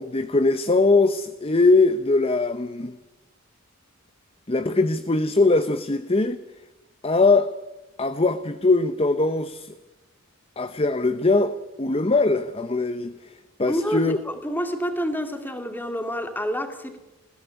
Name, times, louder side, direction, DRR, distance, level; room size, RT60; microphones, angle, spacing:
voice 1, 0.0-3.0 4.5-6.4 7.0-7.5 8.0-9.7 10.6-13.1 13.6-14.2, left 3 dB, 25° left, 0.8 m, -21 dB
voice 2, 13.7-17.0, equal, 10° left, 2.4 m, -28 dB
21.0 x 16.0 x 10.0 m
head